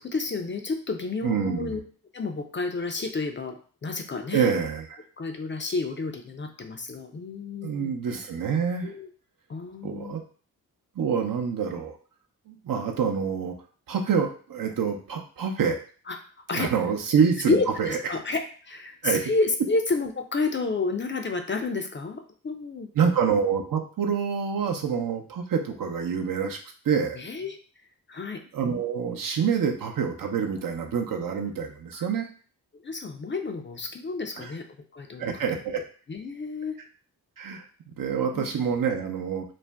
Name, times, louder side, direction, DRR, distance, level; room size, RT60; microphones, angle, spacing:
voice 1, 0.0-1.8 2.1-4.5 5.2-7.9 8.8-9.1 9.5-10.2 16.1-16.2 16.5-16.7 17.5-22.9 27.1-27.6 28.1-28.4 31.9-32.1 32.8-34.7 34.9-35.6 36.1-36.8 38.3-38.5, left 3 dB, 30° left, 5 dB, 0.5 m, -30 dB
voice 2, 1.2-1.8 4.3-5.0 7.6-8.9 9.8-10.2 11.0-12.0 12.5-13.6 13.9-15.8 16.5-18.0 19.0-19.2 23.0-26.6 26.8-27.2 28.5-32.3 34.4-34.5 35.2-35.8 37.4-37.6 38.0-39.4, right 6 dB, 60° right, 3 dB, 0.7 m, -26 dB
2.5 x 2.1 x 3.4 m, 0.41 s
supercardioid pair, 45°, 39 cm